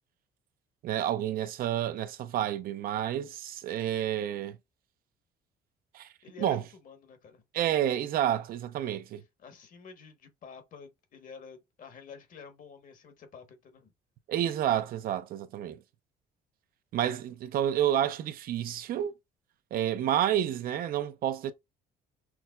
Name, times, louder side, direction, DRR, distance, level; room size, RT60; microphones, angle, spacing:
voice 1, 0.8-4.6 5.9-6.1 6.4-6.6 7.5-9.2 14.3-15.8 16.9-19.1 19.7-21.5, right 11 dB, 60° right, 0.4 m, -29 dB
voice 2, 6.2-8.0 9.4-13.9, left 6 dB, 50° left, 1.1 m, -50 dB
5.8 x 2.1 x 2.3 m
cardioid pair, 110°, 17 cm